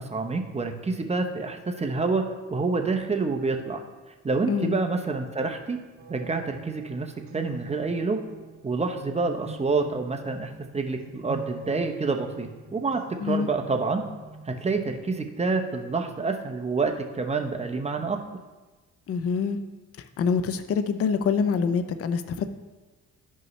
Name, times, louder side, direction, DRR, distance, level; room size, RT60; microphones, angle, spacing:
voice 1, 0.0-3.8 4.2-5.8 6.1-8.2 8.6-14.0 14.5-18.2, right 4 dB, 20° right, 4 dB, 0.9 m, -28 dB
voice 2, 4.5-4.8 13.2-13.5 19.1-19.6 20.0-22.5, left 6 dB, 50° left, 10 dB, 0.6 m, -26 dB
sound 1, 6.0-15.0, right 2 dB, 65° right, 1.8 m, -45 dB
12.0 x 5.5 x 3.2 m, 1.2 s
cardioid pair, 90°, 30 cm